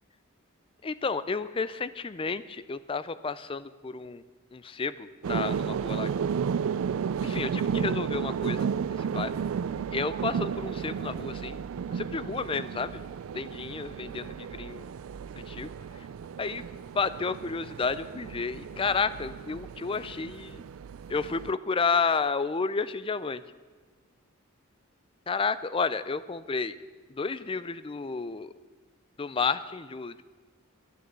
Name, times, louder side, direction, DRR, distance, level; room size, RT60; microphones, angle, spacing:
voice 1, 0.8-4.2 4.5-6.3 7.2-9.3 9.9-11.6 11.9-13.0 13.3-14.9 15.4-15.7 16.4-16.6 16.9-20.6 21.1-23.4 25.3-26.8 27.1-28.5 29.2-30.2, left 4 dB, 25° left, 15 dB, 0.4 m, -31 dB
sound 1, 5.2-21.5, right 7 dB, 70° right, 0.3 m, -33 dB
11.0 x 9.6 x 7.6 m, 1.4 s
head